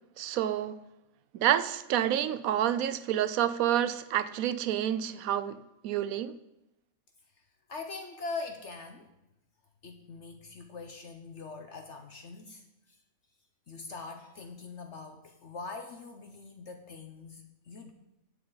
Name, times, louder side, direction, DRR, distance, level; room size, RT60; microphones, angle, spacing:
voice 1, 0.2-0.8 1.3-6.4, right 11 dB, 75° right, 1.0 m, -29 dB
voice 2, 7.7-9.1 9.8-12.6 13.7-17.9, left 4 dB, 55° left, 1.1 m, -42 dB
17.0 x 7.8 x 4.0 m
omnidirectional pair, 1.5 m